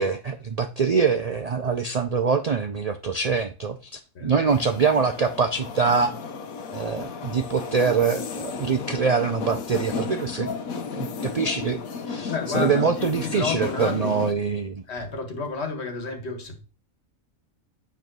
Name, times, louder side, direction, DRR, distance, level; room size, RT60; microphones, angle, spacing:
voice 1, 0.0-6.1 6.7-10.6 10.9-11.8 12.1-14.8, right 5 dB, 80° right, 0.3 m, -24 dB
sound 1, 4.5-14.3, left 5 dB, 80° left, 1.3 m, -33 dB
voice 2, 12.3-14.2 14.9-16.6, left 4 dB, 50° left, 1.7 m, -31 dB
9.2 x 3.5 x 6.1 m
omnidirectional pair, 1.4 m